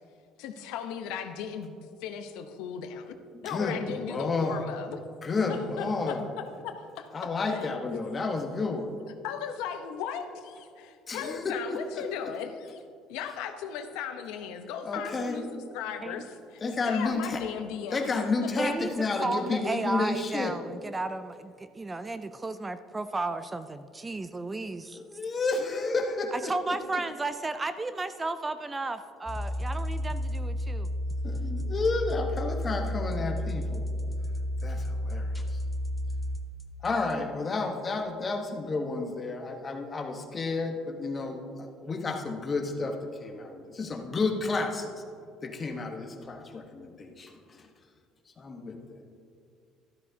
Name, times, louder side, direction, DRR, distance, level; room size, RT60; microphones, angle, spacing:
voice 1, 0.4-1.7 2.0-3.1 3.4-5.0 5.5-7.7 9.2-12.8 13.1-18.2, left 8 dB, 85° left, 7 dB, 0.8 m, -37 dB
voice 2, 3.3-4.6 5.2-6.3 7.1-8.9 11.1-12.0 14.8-15.4 16.6-17.4 17.9-20.5 24.9-26.8 31.2-33.9 34.6-35.6 36.8-45.0 45.4-47.3 47.6-47.7 48.4-48.8, left 3 dB, 25° left, 3 dB, 1.1 m, -31 dB
voice 3, 18.6-18.9 19.2-25.0 26.3-30.9, right 2 dB, 15° right, 11 dB, 0.3 m, -33 dB
sound 1, 29.3-37.1, left 1 dB, 10° left, 0.7 m, -32 dB
12.5 x 12.0 x 2.8 m, 2.3 s
cardioid pair, 135°, 0 cm